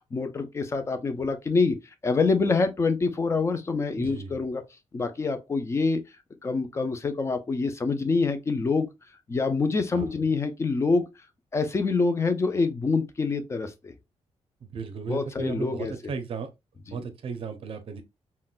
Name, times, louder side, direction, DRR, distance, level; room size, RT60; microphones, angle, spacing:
voice 1, 0.1-1.8 2.0-4.6 4.9-6.0 6.4-8.9 9.3-11.1 11.5-13.9 15.1-15.9 16.9-17.0, left 4 dB, 25° left, 0.4 m, -26 dB
voice 2, 4.0-4.3 9.9-10.1 14.7-16.5 16.9-18.0, right 5 dB, 50° right, 0.5 m, -35 dB
3.7 x 2.1 x 2.4 m
wide cardioid pair, 160°, 12 cm